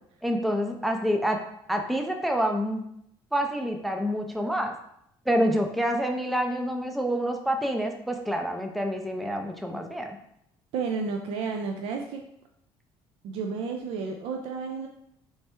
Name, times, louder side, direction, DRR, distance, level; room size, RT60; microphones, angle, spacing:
voice 1, 0.2-1.4 1.7-2.8 3.3-4.7 5.3-10.1, equal, ahead, 3 dB, 0.3 m, -27 dB
voice 2, 10.7-12.3 13.2-14.9, right 5 dB, 70° right, 3 dB, 0.4 m, -31 dB
3.3 x 3.2 x 4.3 m, 0.74 s
cardioid pair, 155°, 10 cm